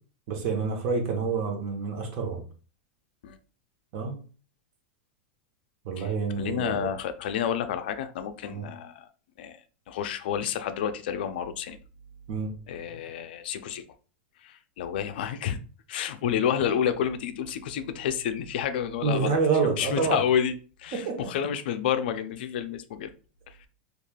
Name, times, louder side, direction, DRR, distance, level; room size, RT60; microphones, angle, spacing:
voice 1, 0.3-2.4 3.9-4.2 5.8-6.9 8.5-8.7 12.3-12.5 19.0-20.2 20.9-21.3, right 5 dB, 45° right, 2 dB, 0.8 m, -28 dB
voice 2, 6.4-9.1 9.4-9.6 9.9-11.8 12.7-13.8 14.4-15.6 15.9-23.1 23.5-23.7, left 8 dB, 70° left, 9 dB, 0.3 m, -30 dB
3.2 x 2.3 x 2.2 m, 0.38 s
supercardioid pair, 155°, 5 cm